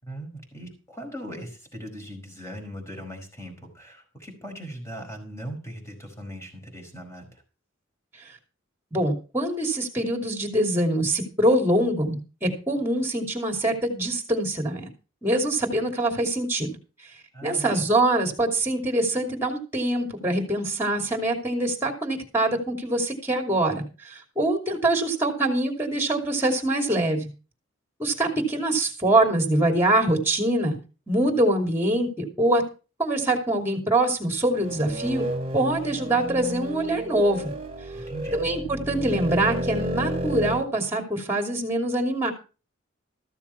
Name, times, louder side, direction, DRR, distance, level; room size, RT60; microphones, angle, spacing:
voice 1, 0.0-7.4 17.3-17.9 37.9-38.4, equal, 15° left, 3 dB, 4.9 m, -39 dB
voice 2, 8.9-14.9 15.2-16.7 17.4-27.3 28.0-30.8 31.1-32.6 33.0-35.3 35.5-37.5 38.3-42.3, right 1 dB, 10° right, 4 dB, 2.8 m, -24 dB
sound 1, 34.4-40.6, right 1 dB, 30° right, 2.0 m, -31 dB
14.0 x 7.1 x 5.7 m, 0.34 s
head